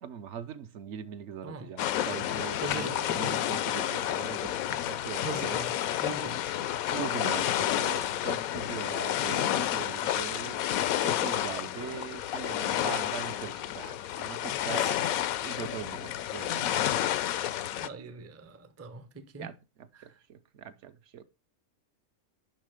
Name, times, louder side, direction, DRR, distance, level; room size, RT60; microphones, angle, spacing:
voice 1, 0.0-5.7 6.9-10.7 11.0-15.1 15.4-16.8 19.4-21.2, right 9 dB, 65° right, 0.9 m, -41 dB
sound 1, 1.8-17.9, left 12 dB, 90° left, 1.0 m, -30 dB
voice 2, 2.6-3.3 5.2-6.5 14.8-14.9 17.8-19.5 20.0-20.2, right 4 dB, 25° right, 0.3 m, -41 dB
10.5 x 3.6 x 4.9 m
omnidirectional pair, 1.4 m